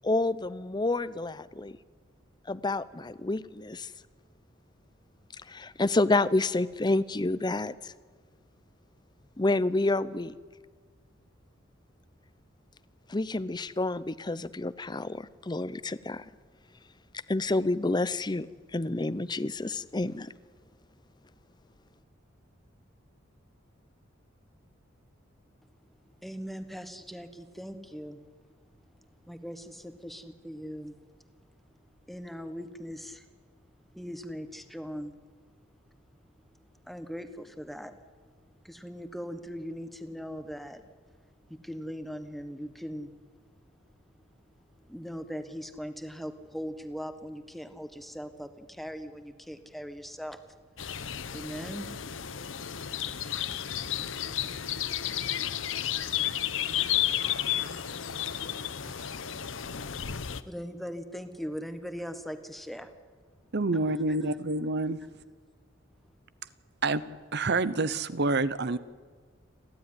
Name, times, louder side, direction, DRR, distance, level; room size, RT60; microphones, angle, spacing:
voice 1, 0.0-1.8 2.5-3.9 5.5-7.9 9.4-10.3 13.1-16.2 17.3-18.5 18.7-20.3, left 2 dB, 20° left, 17 dB, 0.6 m, -29 dB
voice 2, 26.2-28.2 29.2-31.0 32.1-33.4 33.9-35.3 36.8-37.9 38.2-38.3 38.6-40.8 41.5-43.1 44.8-50.4 51.3-51.9 60.4-62.9 63.9-64.4, equal, ahead, 9 dB, 1.3 m, -40 dB
sound 1, 50.8-60.4, left 10 dB, 70° left, 0.9 m, -32 dB
voice 3, 63.5-65.0 66.8-67.0 67.3-68.8, right 3 dB, 55° right, 16 dB, 0.8 m, -27 dB
30.0 x 12.5 x 9.8 m, 1.5 s
head